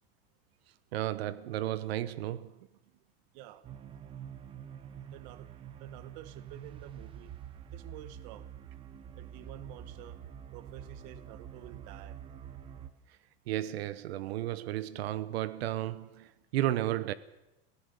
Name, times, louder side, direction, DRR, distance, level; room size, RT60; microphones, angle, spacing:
voice 1, 0.9-2.5 13.5-17.1, right 14 dB, 70° right, 1.1 m, -33 dB
voice 2, 3.3-3.6 5.1-5.5 5.8-7.3 7.7-8.5 9.2-10.2 10.5-12.2, right 13 dB, 40° right, 1.1 m, -49 dB
sound 1, 3.6-12.9, right 9 dB, 15° right, 0.7 m, -47 dB
22.5 x 17.0 x 6.8 m
supercardioid pair, 180°, 32 cm